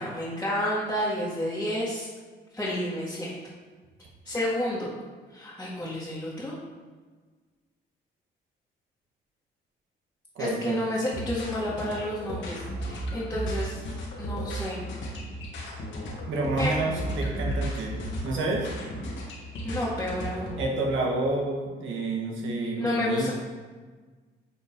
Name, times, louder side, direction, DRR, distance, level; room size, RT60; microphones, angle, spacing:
voice 1, 0.0-2.1 2.5-3.3 4.2-4.9 5.3-6.5 10.4-13.8 14.2-14.8 16.6-16.7 19.6-20.5 22.8-23.3, left 1 dB, 10° left, -9 dB, 2.0 m, -30 dB
voice 2, 10.3-10.8 16.3-18.0 18.2-18.7 20.6-23.3, right 2 dB, 75° right, -1 dB, 1.5 m, -29 dB
sound 1, 11.0-20.6, equal, 75° left, 1.8 m, -34 dB
9.2 x 4.2 x 3.7 m, 1.4 s
cardioid pair, 90°, 20 cm